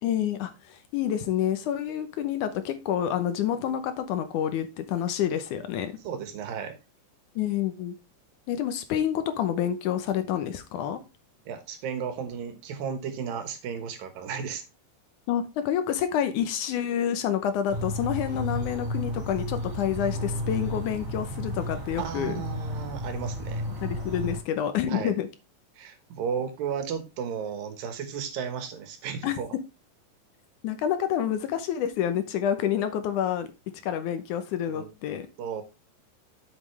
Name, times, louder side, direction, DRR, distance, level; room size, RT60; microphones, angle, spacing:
voice 1, 0.0-5.9 7.4-7.9 8.5-11.0 15.3-22.4 23.8-25.3 29.2-29.4 30.6-33.5 33.8-35.3, left 9 dB, 75° left, 2.1 m, -28 dB
voice 2, 6.0-6.8 11.5-14.6 22.0-23.8 24.9-25.1 25.8-29.5 34.7-34.9 35.4-35.6, right 7 dB, 80° right, 3.1 m, -34 dB
sound 1, 17.7-24.4, left 1 dB, 30° right, 3.5 m, -33 dB
8.1 x 7.6 x 3.3 m
omnidirectional pair, 4.0 m